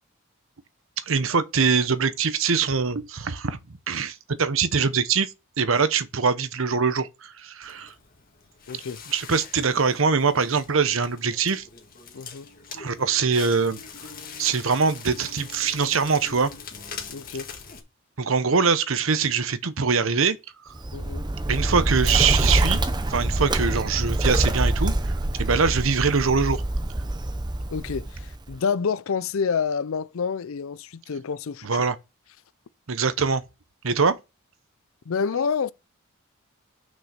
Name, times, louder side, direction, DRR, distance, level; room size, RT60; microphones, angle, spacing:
voice 1, 1.1-3.6 3.9-5.3 5.6-7.9 9.1-11.6 12.7-13.8 14.4-16.5 18.2-20.4 21.5-22.8 23.1-25.1 25.4-26.6 31.6-32.0 32.9-33.4 33.8-34.2, right 5 dB, 75° right, 0.9 m, -23 dB
Crackle, 7.6-17.8, left 5 dB, 40° left, 1.7 m, -42 dB
voice 2, 8.7-9.0 12.1-12.5 17.1-17.5 20.9-21.3 27.7-31.8 35.1-35.7, left 6 dB, 80° left, 0.5 m, -28 dB
Bird, 20.8-28.6, right 1 dB, 20° right, 0.7 m, -25 dB
6.2 x 5.4 x 6.7 m
head